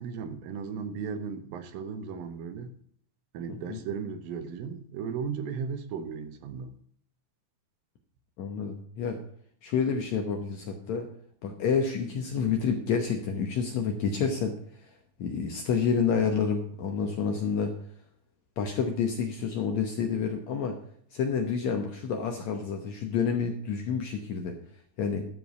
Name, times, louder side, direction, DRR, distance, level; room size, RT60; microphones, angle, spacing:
voice 1, 0.0-2.7 3.3-6.7, right 6 dB, 75° right, 9 dB, 2.6 m, -36 dB
voice 2, 3.5-3.8 8.4-9.2 9.6-11.1 11.4-14.5 14.8-14.9 15.2-17.7 18.6-20.7 21.1-24.5 25.0-25.2, left 6 dB, 70° left, 3 dB, 1.8 m, -29 dB
13.0 x 4.6 x 8.1 m, 0.63 s
omnidirectional pair, 4.3 m